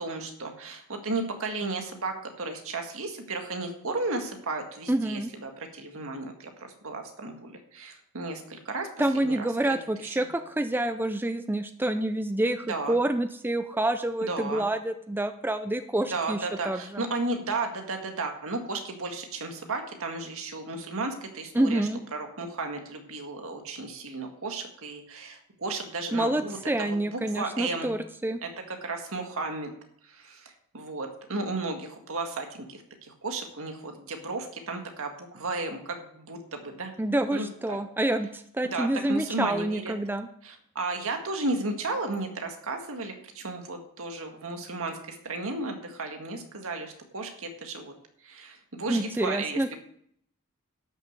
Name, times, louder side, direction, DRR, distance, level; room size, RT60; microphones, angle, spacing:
voice 1, 0.0-8.9 9.2-9.8 10.0-10.2 12.7-13.0 14.3-14.6 16.1-27.9 28.4-29.7 30.1-36.9 37.3-37.8 38.7-39.9 40.4-47.9 48.2-49.8, right 3 dB, 65° right, 4 dB, 2.0 m, -34 dB
voice 2, 4.9-5.3 9.0-17.0 21.5-22.0 26.1-28.4 37.0-40.3 48.9-49.8, right 1 dB, 10° right, 9 dB, 0.4 m, -28 dB
12.0 x 6.6 x 6.8 m, 0.69 s
head